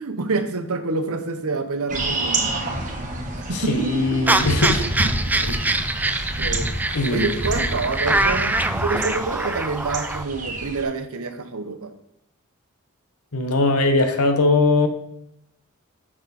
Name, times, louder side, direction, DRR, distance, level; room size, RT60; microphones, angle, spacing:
voice 1, 0.0-2.6 3.5-4.6 6.4-6.7 7.1-11.9, right 3 dB, 70° right, 8 dB, 0.9 m, -27 dB
sound 1, 1.9-10.8, right 2 dB, 35° right, 1.5 m, -28 dB
voice 2, 3.5-4.8 5.4-5.6 6.9-7.4 13.3-14.9, left 3 dB, 70° left, 7 dB, 1.1 m, -20 dB
sound 2, 4.3-10.2, right 2 dB, 10° right, 0.3 m, -24 dB
6.6 x 6.1 x 4.2 m, 0.81 s
head